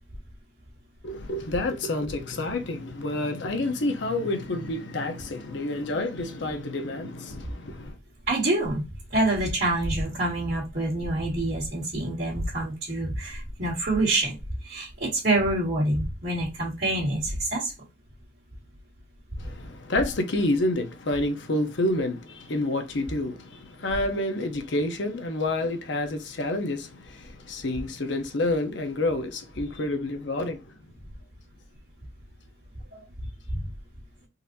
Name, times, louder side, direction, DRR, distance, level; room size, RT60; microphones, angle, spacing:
voice 1, 1.0-8.0 19.4-30.9, left 2 dB, 65° left, 0.7 m, -29 dB
voice 2, 8.3-8.8 9.1-14.4 14.7-17.7 32.9-33.0 33.5-33.6, right 2 dB, 50° right, 1.8 m, -26 dB
4.0 x 2.5 x 2.6 m
head